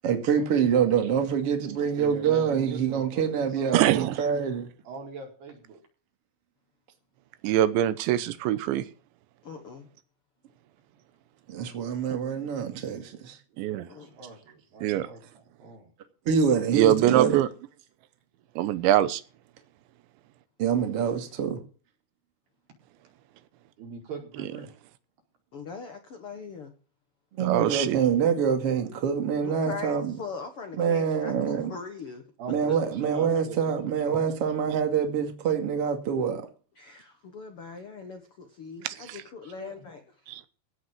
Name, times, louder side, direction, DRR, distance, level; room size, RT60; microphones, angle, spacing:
voice 1, 0.0-4.7 11.5-13.4 16.2-17.4 20.6-21.6 27.3-30.2 30.8-31.7 32.5-36.4, right 7 dB, 40° right, 2.6 m, -26 dB
voice 2, 2.0-3.7 4.9-5.8 13.5-15.9 23.8-24.8 27.4-27.8 32.4-34.9 39.4-39.8, right 4 dB, 65° right, 6.8 m, -43 dB
voice 3, 3.7-4.1 7.4-8.9 13.6-13.9 14.8-15.1 16.7-17.5 18.6-19.2 27.4-28.0 38.8-39.2 40.3-40.4, right 12 dB, 90° right, 3.3 m, -23 dB
voice 4, 9.4-9.9 13.9-14.1 25.5-26.7 29.4-32.2 32.7-32.8 36.8-40.0, left 5 dB, 80° left, 1.2 m, -40 dB
16.5 x 6.3 x 7.6 m
omnidirectional pair, 5.1 m